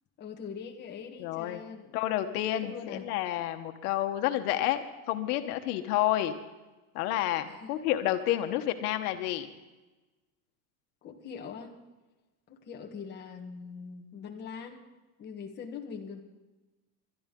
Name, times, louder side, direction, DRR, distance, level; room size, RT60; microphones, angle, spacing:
voice 1, 0.2-2.0 2.6-3.0 7.5-7.8 11.0-11.7 12.5-14.8 15.2-16.2, left 6 dB, 25° left, 1 dB, 1.4 m, -42 dB
voice 2, 1.2-1.6 1.9-6.3 6.9-9.5, left 13 dB, 85° left, 7 dB, 1.3 m, -30 dB
21.5 x 12.5 x 3.8 m, 1.1 s
cardioid pair, 175°, 44 cm